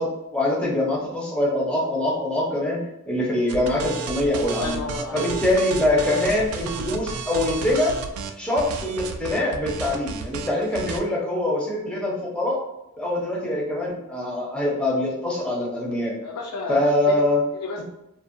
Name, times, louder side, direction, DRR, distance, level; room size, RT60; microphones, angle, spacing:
voice 1, 0.0-2.8 3.1-4.8 5.1-7.9 8.4-12.6 13.0-16.2 16.7-17.4, left 1 dB, 5° left, -3 dB, 0.6 m, -24 dB
sound 1, 3.5-11.0, right 4 dB, 70° right, 0.3 m, -32 dB
voice 2, 4.4-5.4 16.2-17.2 17.5-17.8, left 3 dB, 75° left, 0 dB, 0.4 m, -32 dB
2.6 x 2.1 x 2.5 m, 0.88 s
head